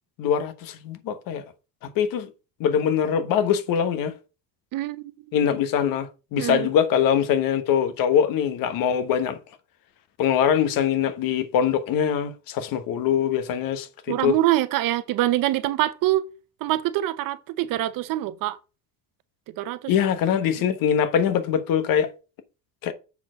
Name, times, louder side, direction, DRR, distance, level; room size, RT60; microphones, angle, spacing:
voice 1, 0.2-1.4 2.0-2.3 2.6-4.1 5.3-9.4 10.2-13.9 14.2-14.4 19.9-22.1 22.8-22.9, left 8 dB, 70° left, 1.1 m, -23 dB
voice 2, 4.7-5.5 6.4-6.7 14.1-16.3 16.6-18.6 19.6-19.9, right 15 dB, 65° right, 0.7 m, -25 dB
7.2 x 4.3 x 5.0 m
cardioid pair, 175°, 35 cm